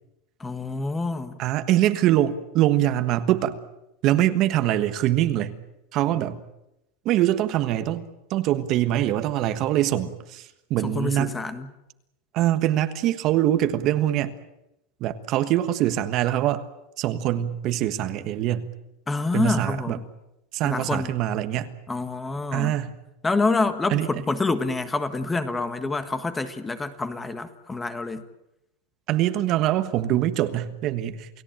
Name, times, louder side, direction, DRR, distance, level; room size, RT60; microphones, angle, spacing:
voice 1, 0.4-1.4 10.8-11.7 19.1-20.0 20.6-21.1 21.9-22.8 23.2-28.2, left 3 dB, 10° left, 10 dB, 1.5 m, -27 dB
voice 2, 1.4-3.6 4.0-5.5 5.9-6.4 7.0-8.0 8.3-11.3 12.3-14.3 15.0-16.6 17.0-18.7 19.3-20.0 20.5-21.7 22.5-23.0 23.9-24.1 29.1-31.3, right 13 dB, 40° right, 10 dB, 1.4 m, -23 dB
29.0 x 17.0 x 8.9 m, 0.88 s
supercardioid pair, 150°, 0 cm